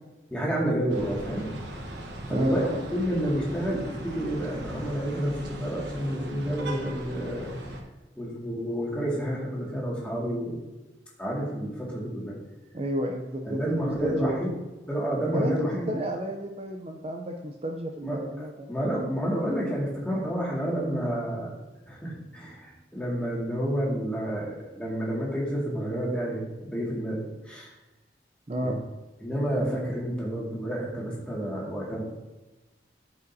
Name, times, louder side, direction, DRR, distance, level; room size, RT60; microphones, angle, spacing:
voice 1, 0.3-1.5 2.3-7.5 8.2-10.6 11.2-12.4 13.4-14.6 14.9-16.0 18.0-21.6 21.9-27.7 28.6-28.8 29.2-32.0, equal, 5° left, -5 dB, 2.0 m, -30 dB
sound 1, 0.9-7.8, right 1 dB, 85° right, 1.2 m, -39 dB
voice 2, 2.3-2.8 12.7-14.4 15.3-15.5 15.9-18.7 28.5-28.8, right 1 dB, 35° right, 2 dB, 0.5 m, -31 dB
13.5 x 5.2 x 2.7 m, 1.1 s
head